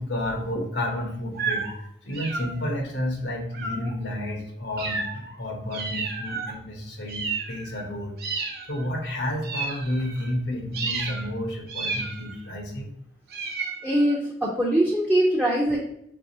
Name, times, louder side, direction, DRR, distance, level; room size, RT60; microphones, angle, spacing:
voice 1, 0.0-8.2 8.4-12.9, left 1 dB, 85° left, 1 dB, 1.0 m, -31 dB
sound 1, 1.3-1.8 2.1-2.8 3.5-4.0 4.8-5.4 5.7-6.6 7.1-7.9 8.2-8.9 9.4-10.3 10.7-11.3 11.7-12.5 13.3-14.2, right 4 dB, 60° right, 0.7 m, -32 dB
voice 2, 13.8-15.8, right 1 dB, 5° right, -3 dB, 0.5 m, -22 dB
4.7 x 3.3 x 2.7 m, 0.73 s
head